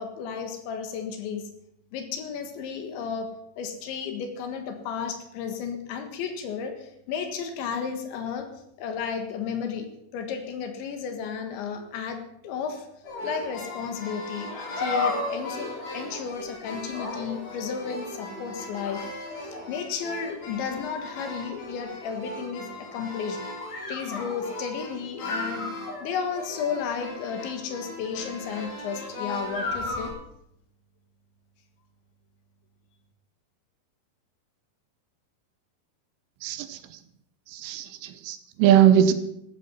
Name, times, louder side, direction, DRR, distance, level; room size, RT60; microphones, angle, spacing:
voice 1, 0.0-1.5 1.9-3.3 3.6-8.5 8.8-9.9 10.1-12.9 13.2-23.4 23.9-25.7 26.0-30.1, left 6 dB, 70° left, 6 dB, 3.7 m, -33 dB
sound 1, 13.0-30.1, left 2 dB, 50° left, 5.7 m, -35 dB
voice 2, 36.4-36.8 37.5-39.1, right 10 dB, 85° right, 11 dB, 3.5 m, -20 dB
15.0 x 13.0 x 5.6 m, 0.76 s
omnidirectional pair, 5.7 m